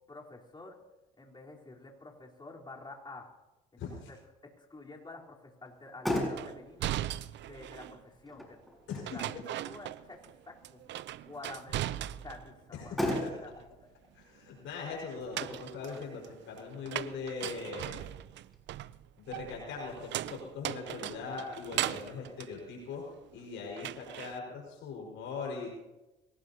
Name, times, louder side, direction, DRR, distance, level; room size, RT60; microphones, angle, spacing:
voice 1, 0.1-0.8 1.2-3.3 3.7-3.8 4.1-4.2 4.4-7.2 7.4-8.6 9.1-10.2 10.5-10.9 11.3-13.7 16.1-16.3 22.1-22.2, left 3 dB, 20° left, -3 dB, 3.9 m, -49 dB
voice 2, 3.8-4.1 8.9-9.2 12.7-13.4 14.1-18.0 19.2-25.8, left 5 dB, 75° left, -1 dB, 5.1 m, -41 dB
Motor vehicle (road), 5.7-18.6, left 1 dB, ahead, 5.4 m, -41 dB
sound 1, 6.4-8.0 9.1-10.4 10.6-12.5 12.8-13.7 15.1-23.4 23.8-24.4, right 13 dB, 65° right, 0.5 m, -39 dB
22.5 x 19.0 x 2.9 m, 1.0 s
supercardioid pair, 70°, 20 cm